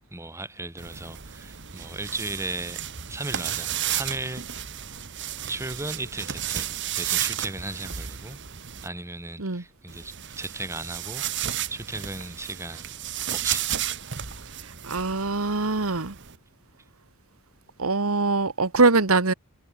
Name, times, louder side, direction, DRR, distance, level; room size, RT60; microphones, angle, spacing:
voice 1, 0.1-2.8 3.1-4.4 5.4-8.4 8.8-11.2 11.7-12.9 13.3-13.7, right 2 dB, 15° right, 2.8 m, -36 dB
sound 1, 0.8-8.9 9.9-16.4, right 10 dB, 60° right, 1.9 m, -33 dB
voice 2, 14.8-16.2 17.8-19.3, right 3 dB, 85° right, 1.6 m, -22 dB
head